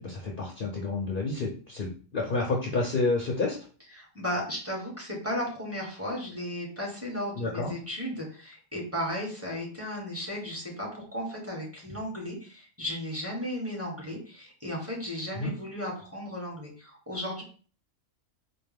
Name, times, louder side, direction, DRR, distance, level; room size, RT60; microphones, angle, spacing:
voice 1, 0.0-3.6 7.4-7.7 15.4-15.5, left 3 dB, 50° left, 0 dB, 0.7 m, -29 dB
voice 2, 3.9-17.4, equal, 10° right, -3 dB, 1.3 m, -35 dB
4.3 x 2.2 x 3.4 m, 0.40 s
omnidirectional pair, 1.3 m